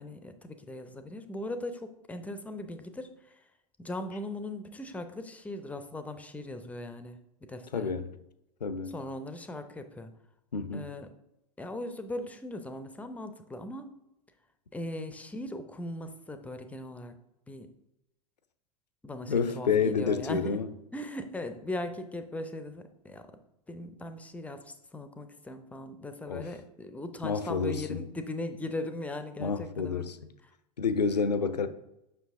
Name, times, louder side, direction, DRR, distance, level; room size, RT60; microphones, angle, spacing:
voice 1, 0.0-3.1 3.8-7.2 7.5-7.9 8.9-10.1 10.7-11.1 11.6-13.9 14.7-17.2 17.5-17.7 19.0-20.6 20.9-23.2 23.7-30.1, left 1 dB, 5° left, 0.5 m, -39 dB
voice 2, 7.7-8.1 8.6-9.0 10.5-10.9 19.3-20.7 26.3-26.5 27.2-28.1 29.4-30.2 30.8-31.7, left 5 dB, 80° left, 0.6 m, -29 dB
7.1 x 5.7 x 3.5 m
figure-of-eight pair, 95°, 21 cm